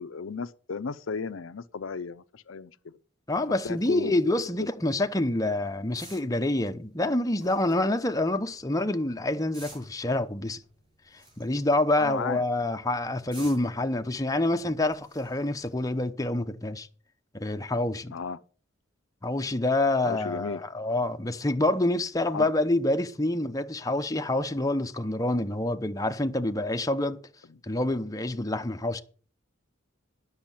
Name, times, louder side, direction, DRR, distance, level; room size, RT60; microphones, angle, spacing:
voice 1, 0.0-3.0 3.6-4.7 12.0-12.4 18.1-18.4 20.0-20.6 22.3-22.5, left 5 dB, 90° left, 0.6 m, -35 dB
voice 2, 3.3-10.6 11.4-16.9 17.3-18.1 19.2-27.2 27.6-29.0, left 2 dB, 20° left, 0.8 m, -27 dB
sound 1, 3.7-15.9, right 2 dB, 30° right, 7.1 m, -54 dB
10.0 x 6.4 x 7.3 m
head